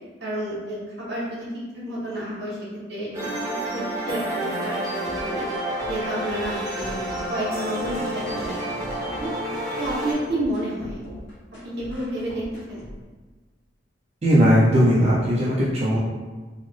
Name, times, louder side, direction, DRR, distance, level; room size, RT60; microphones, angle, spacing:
voice 1, 0.2-1.5 1.8-2.6 2.9-5.5 5.9-7.0 7.3-9.3 9.8-11.0 11.6-12.8, right 1 dB, 65° right, -7 dB, 1.3 m, -31 dB
sound 1, 3.1-10.1, right 1 dB, 15° right, 1.0 m, -29 dB
sound 2, 5.0-13.0, equal, 90° left, 1.4 m, -42 dB
voice 2, 14.2-16.0, equal, 35° right, -7 dB, 0.5 m, -18 dB
4.0 x 2.0 x 3.0 m, 1.3 s
head